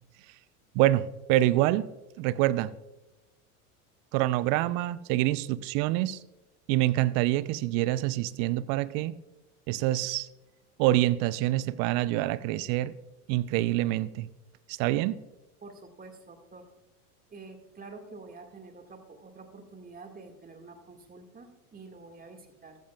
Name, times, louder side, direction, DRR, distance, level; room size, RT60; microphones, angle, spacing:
voice 1, 0.7-1.9 2.2-2.7 4.1-6.2 6.7-9.2 9.7-10.3 10.8-12.9 13.3-14.3 14.7-15.2, right 15 dB, 50° right, 18 dB, 0.6 m, -26 dB
voice 2, 15.6-16.7 17.3-22.8, right 3 dB, 20° right, 5 dB, 2.0 m, -48 dB
13.5 x 13.5 x 2.4 m, 1.0 s
hypercardioid pair, 80°, 44 cm